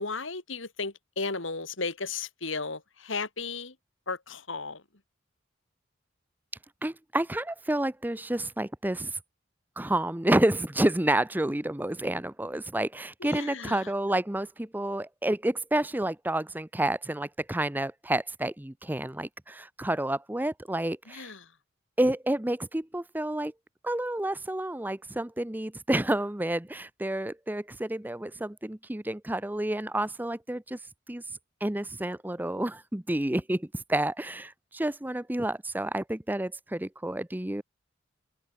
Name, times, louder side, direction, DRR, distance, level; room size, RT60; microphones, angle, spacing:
voice 1, 0.0-3.7 4.1-4.8 13.2-13.9 21.1-21.4, left 4 dB, 80° left, 3.4 m, -35 dB
voice 2, 6.8-9.1 9.8-21.3 22.0-23.5 23.8-30.8 31.1-31.2 31.6-37.6, right 1 dB, 10° right, 0.7 m, -29 dB
open air
head